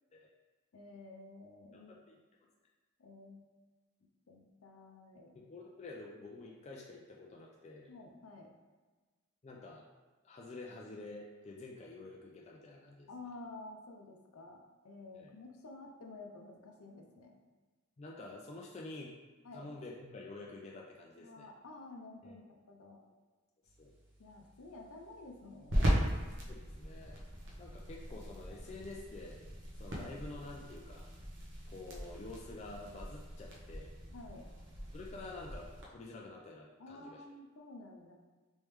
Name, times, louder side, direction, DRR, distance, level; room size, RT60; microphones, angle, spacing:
voice 1, 0.7-1.9 3.0-3.5 4.3-5.3 7.9-8.5 13.1-17.4 19.4-19.7 21.2-22.4 22.7-23.0 24.2-26.0 27.3-27.4 34.1-34.5 36.8-38.1, left 2 dB, 80° left, 2 dB, 0.6 m, -51 dB
voice 2, 1.7-2.2 5.3-7.9 9.4-9.8 10.2-13.1 15.1-15.3 18.0-19.1 19.5-21.5 22.2-22.4 23.8-23.9 26.5-27.2 27.6-29.4 29.8-31.1 31.7-33.9 34.9-37.2, left 2 dB, 30° left, -1 dB, 0.3 m, -49 dB
sound 1, 23.6-35.8, equal, 55° right, 0.8 m, -39 dB
3.3 x 3.1 x 3.1 m, 1.3 s
head